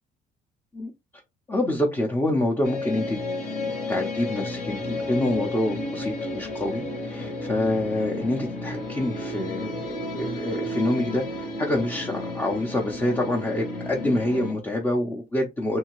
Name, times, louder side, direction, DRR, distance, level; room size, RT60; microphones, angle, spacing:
voice 1, 1.5-3.2 3.6-15.8, left 1 dB, 15° left, 0.7 m, -27 dB
sound 1, 2.6-14.5, left 1 dB, 60° left, 1.5 m, -32 dB
2.7 x 2.7 x 3.0 m
cardioid pair, 110°, 17 cm